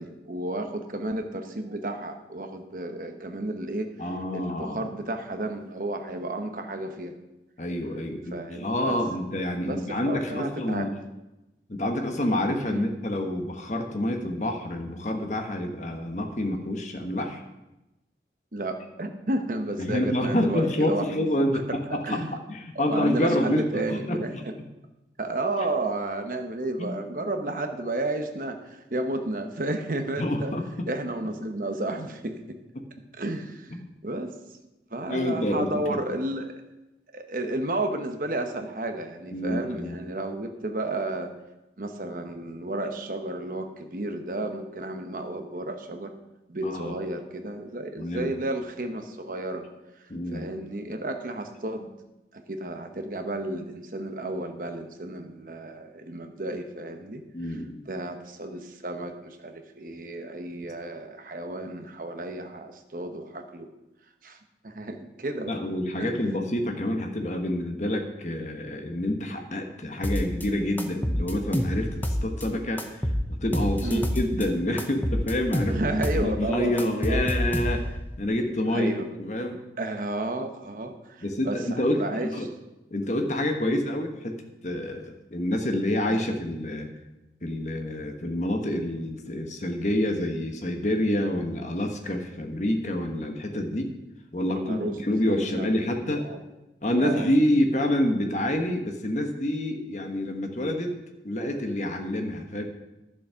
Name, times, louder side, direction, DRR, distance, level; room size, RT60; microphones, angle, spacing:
voice 1, 0.0-3.9 4.3-7.1 8.3-9.0 9.7-11.0 12.7-12.9 18.5-21.8 22.0-22.3 22.7-24.5 25.2-30.5 30.9-32.6 33.2-34.3 34.9-36.5 37.1-41.3 41.8-46.1 46.5-49.6 50.3-51.9 52.3-57.6 57.9-63.7 64.2-64.4 64.6-65.6 66.0-66.1 73.8-74.1 75.7-77.3 78.7-79.1 79.8-82.3 83.6-83.7 94.5-95.0 95.4-95.7 96.1-96.4 97.0-97.3, right 1 dB, 50° right, 6 dB, 1.1 m, -32 dB
voice 2, 4.0-4.8 7.6-10.9 11.7-17.4 19.8-22.2 22.5-24.2 26.8-26.9 30.2-30.6 35.1-36.0 39.3-40.0 46.6-46.9 48.0-48.3 50.1-50.5 57.3-57.8 65.5-75.8 76.1-77.8 78.2-79.6 81.2-82.0 82.3-82.5 82.9-84.4 84.6-86.9 87.4-93.9 94.3-96.3 96.8-101.0 101.2-102.6, left 1 dB, 40° left, 4 dB, 1.3 m, -27 dB
sound 1, 70.0-70.5 70.8-72.5 72.8-74.5 74.8-76.3 76.5-78.0, equal, 10° left, 0.8 m, -27 dB
11.0 x 7.3 x 5.7 m, 0.98 s
head